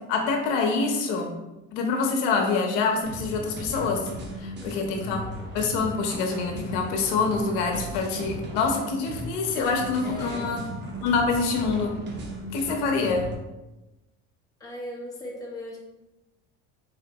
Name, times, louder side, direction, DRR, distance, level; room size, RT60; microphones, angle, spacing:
voice 1, 0.1-1.3 1.7-4.1 4.4-5.2 5.5-10.6 11.0-12.0 12.5-13.3, left 4 dB, 80° left, 2 dB, 1.0 m, -26 dB
sound 1, 3.0-13.4, equal, 30° right, 0.9 m, -37 dB
voice 2, 4.6-5.1 10.0-10.5 14.6-15.8, equal, 10° left, -5 dB, 1.1 m, -38 dB
4.1 x 3.7 x 3.0 m, 1.0 s
cardioid pair, 120°, 33 cm